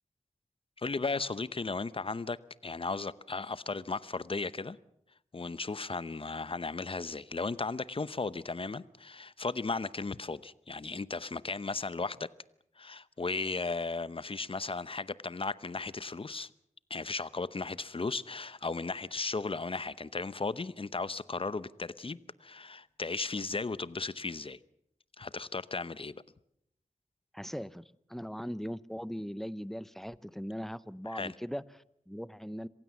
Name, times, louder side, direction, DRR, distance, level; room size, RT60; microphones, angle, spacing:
voice 1, 0.8-2.4 2.6-4.8 5.3-12.3 12.8-16.5 16.9-24.6 25.2-26.1 31.1-31.3, left 3 dB, 45° left, 0.8 m, -35 dB
voice 2, 27.3-32.7, equal, ahead, 0.8 m, -40 dB
26.5 x 16.0 x 7.2 m
wide cardioid pair, 65°, 13 cm